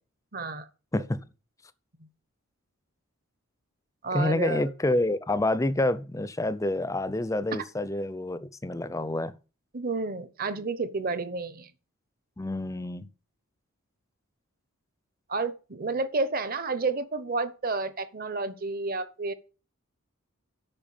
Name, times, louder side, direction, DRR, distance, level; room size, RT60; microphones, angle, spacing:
voice 1, 0.3-0.7 2.0-2.1 4.0-4.7 7.5-7.6 9.7-11.7 15.3-19.3, right 3 dB, 40° right, 0.9 m, -30 dB
voice 2, 4.1-9.3 12.4-13.1, left 1 dB, 15° left, 0.5 m, -28 dB
8.9 x 5.8 x 7.1 m
head